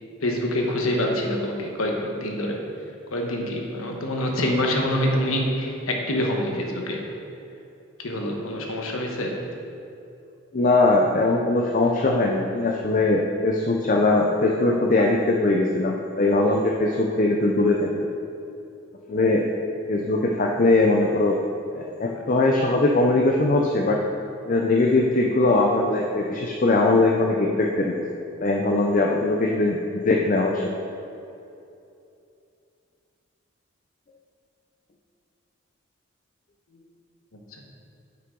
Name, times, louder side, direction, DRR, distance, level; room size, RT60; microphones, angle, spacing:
voice 1, 0.2-2.6 3.1-7.0 8.0-9.4 37.5-37.6, left 1 dB, 85° left, 1 dB, 1.1 m, -26 dB
voice 2, 10.5-17.9 19.1-19.4 19.9-21.4 21.7-24.0 24.4-27.9 28.4-30.6, left 2 dB, 40° left, 0 dB, 0.5 m, -21 dB
9.6 x 5.7 x 3.8 m, 2.7 s
head